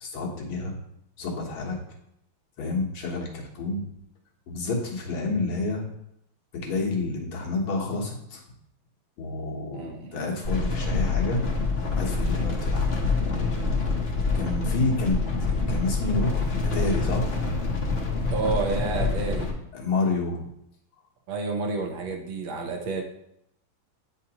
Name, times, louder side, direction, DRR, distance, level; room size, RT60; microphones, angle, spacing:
voice 1, 0.0-0.8 1.2-1.8 2.6-3.9 4.5-5.8 6.5-8.4 9.2-11.4 11.9-12.9 13.1-13.7 14.4-15.2 15.7-16.3 16.6-17.3 19.7-20.4, left 3 dB, 80° left, -1 dB, 2.0 m, -29 dB
voice 2, 9.7-10.2 18.2-19.5 21.3-23.0, right 3 dB, 70° right, 2 dB, 1.6 m, -30 dB
sound 1, 10.4-19.5, left 3 dB, 55° left, 0.6 m, -26 dB
8.4 x 4.4 x 2.9 m, 0.76 s
omnidirectional pair, 2.3 m